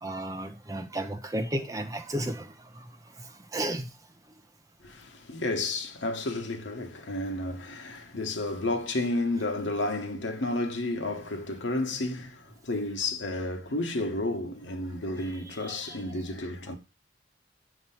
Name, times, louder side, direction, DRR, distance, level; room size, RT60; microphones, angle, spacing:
voice 1, 0.0-2.9 3.2-3.9 15.5-16.0, right 1 dB, 20° right, 0.6 m, -34 dB
voice 2, 4.8-16.8, left 2 dB, 90° left, 1.0 m, -31 dB
6.4 x 2.9 x 5.5 m
head